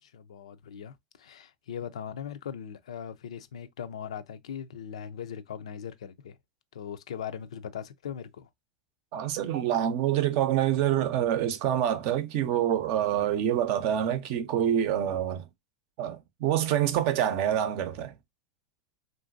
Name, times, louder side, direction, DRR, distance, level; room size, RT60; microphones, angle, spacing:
voice 1, 0.0-6.4 6.7-8.5, left 8 dB, 90° left, 0.4 m, -40 dB
voice 2, 9.1-15.5 16.0-18.1, right 10 dB, 60° right, 0.6 m, -26 dB
3.0 x 2.6 x 2.4 m
hypercardioid pair, 110°, 3 cm